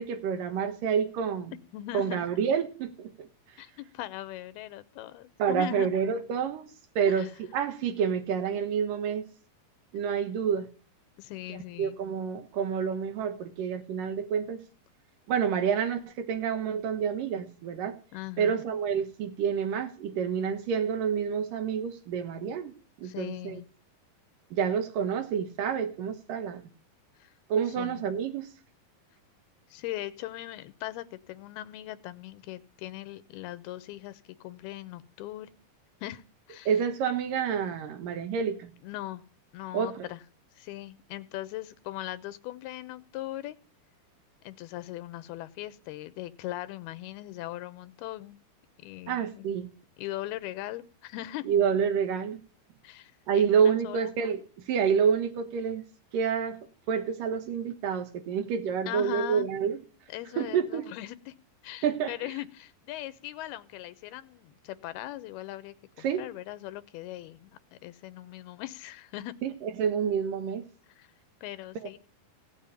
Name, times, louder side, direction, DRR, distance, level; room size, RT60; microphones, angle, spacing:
voice 1, 0.0-1.5 1.9-3.3 5.4-6.7 7.0-9.3 9.9-10.7 11.8-14.6 15.3-18.0 18.4-22.7 23.0-23.6 24.5-26.6 27.5-28.5 36.7-38.7 39.7-40.1 49.1-49.7 51.5-52.4 53.3-54.4 54.7-55.8 56.1-56.6 56.9-59.8 60.4-60.9 61.8-62.1 66.0-66.2 69.4-70.6, right 7 dB, 65° right, 2.8 m, -28 dB
voice 2, 1.7-2.2 3.6-5.9 7.1-7.3 11.2-12.0 18.1-18.6 23.0-23.7 27.2-27.3 27.8-28.1 29.7-35.5 36.0-36.2 36.5-36.7 38.8-39.2 39.5-40.2 40.6-43.6 44.4-48.4 48.8-49.5 50.0-51.5 52.8-54.1 58.9-59.5 60.1-61.3 61.6-69.3 70.9-71.1 71.4-72.0, left 15 dB, 85° left, 2.9 m, -40 dB
17.0 x 7.4 x 9.9 m
omnidirectional pair, 4.4 m